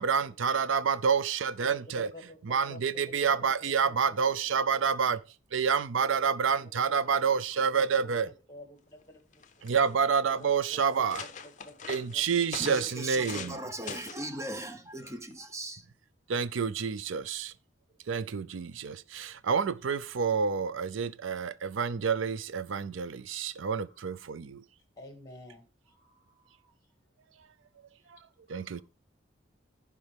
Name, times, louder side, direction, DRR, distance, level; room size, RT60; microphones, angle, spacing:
voice 1, 0.0-2.1 2.4-5.2 5.5-8.3 9.6-11.2 11.9-13.6 16.3-17.5 18.1-24.6 28.5-28.8, right 6 dB, 85° right, 0.5 m, -28 dB
voice 2, 0.5-0.8 1.6-4.8 6.0-9.9 10.4-12.9 13.8-14.1 23.8-24.0 25.0-26.7 28.5-28.8, left 1 dB, 20° left, 1.8 m, -52 dB
sound 1, 9.0-9.1 9.3-9.9 10.5-10.6 10.9-13.6 13.9-14.3 15.0-15.3, left 6 dB, 40° left, 0.6 m, -43 dB
voice 3, 12.6-15.8, right 1 dB, 15° right, 0.7 m, -38 dB
15.0 x 4.9 x 3.4 m
head